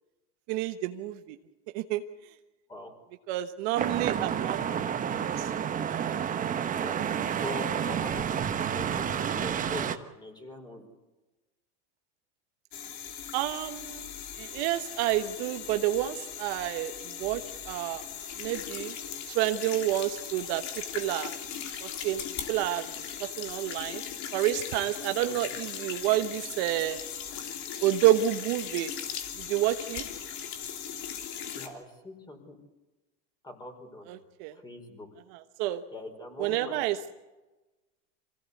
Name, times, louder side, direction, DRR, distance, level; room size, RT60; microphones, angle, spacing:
voice 1, 0.5-1.4 1.7-2.0 3.3-4.9 5.2-5.5 5.9-6.2 7.2-7.3 13.3-14.0 14.4-16.9 17.2-18.1 18.4-18.9 19.3-20.6 20.9-21.3 21.8-22.9 23.2-24.0 24.3-27.0 27.8-28.9 29.4-30.0 34.1-34.5 35.6-35.8 36.4-37.1, right 14 dB, 55° right, 8 dB, 1.2 m, -29 dB
sound 1, 3.8-10.0, right 8 dB, 20° right, 1.1 m, -30 dB
voice 2, 7.3-10.9 25.3-25.4 31.5-32.6 33.4-34.2 34.5-35.1 35.9-37.0, left 2 dB, 10° left, 4 dB, 4.9 m, -42 dB
sound 2, 12.7-31.7, left 8 dB, 50° left, 3.1 m, -39 dB
25.5 x 17.0 x 8.4 m, 1.1 s
supercardioid pair, 135°, 37 cm